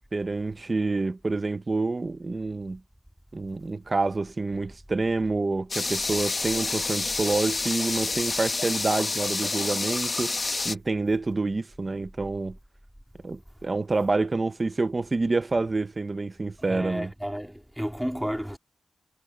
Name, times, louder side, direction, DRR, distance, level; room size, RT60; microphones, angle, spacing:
voice 1, 0.1-2.8 3.3-12.6 13.2-17.1, right 3 dB, 25° right, 0.9 m, -28 dB
sound 1, 5.7-10.8, left 3 dB, 30° left, 1.3 m, -28 dB
voice 2, 16.6-18.6, equal, ahead, 2.6 m, -32 dB
wide cardioid pair, 180°, 0 cm